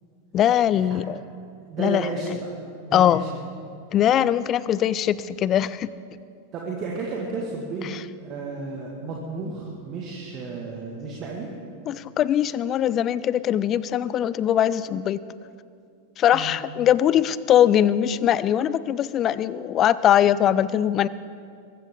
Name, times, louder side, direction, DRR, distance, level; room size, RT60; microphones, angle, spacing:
voice 1, 0.3-1.2 1.8-2.1 2.9-3.2 3.9-5.9 7.8-8.0 11.9-15.2 16.2-21.1, left 10 dB, 30° left, 18 dB, 0.4 m, -21 dB
voice 2, 1.7-2.6 2.9-3.3 6.5-7.9 8.2-11.5 16.3-16.5, right 3 dB, 35° right, -2 dB, 2.1 m, -32 dB
22.5 x 13.5 x 3.8 m, 2.4 s
figure-of-eight pair, 90°, 0 cm